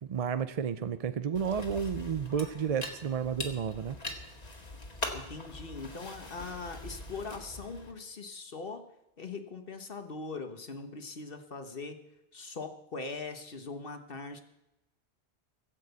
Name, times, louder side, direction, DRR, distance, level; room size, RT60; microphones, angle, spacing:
voice 1, 0.0-4.0, right 7 dB, 45° right, 12 dB, 0.5 m, -32 dB
sound 1, 1.3-7.9, left 2 dB, 35° left, 1.9 m, -42 dB
voice 2, 5.1-8.8 9.2-12.0 12.3-14.4, left 4 dB, 60° left, 7 dB, 1.4 m, -41 dB
17.5 x 7.6 x 8.2 m, 0.91 s
omnidirectional pair, 1.1 m